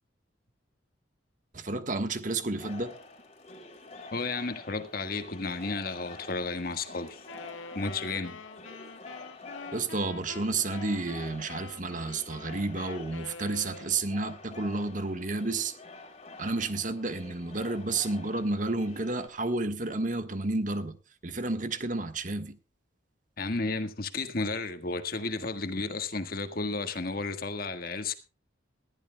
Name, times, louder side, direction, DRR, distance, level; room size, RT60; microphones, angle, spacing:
voice 1, 1.5-3.0 9.7-15.7 16.4-21.0 21.2-22.6, right 3 dB, 40° right, 1.4 m, -31 dB
sound 1, 2.6-19.3, left 3 dB, 35° left, 3.2 m, -48 dB
voice 2, 4.1-7.2 7.7-8.4 23.4-28.2, left 3 dB, 50° left, 1.6 m, -33 dB
Wind instrument woodwind instrument, 7.2-14.2, left 4 dB, 85° left, 1.1 m, -46 dB
20.0 x 14.0 x 2.3 m
head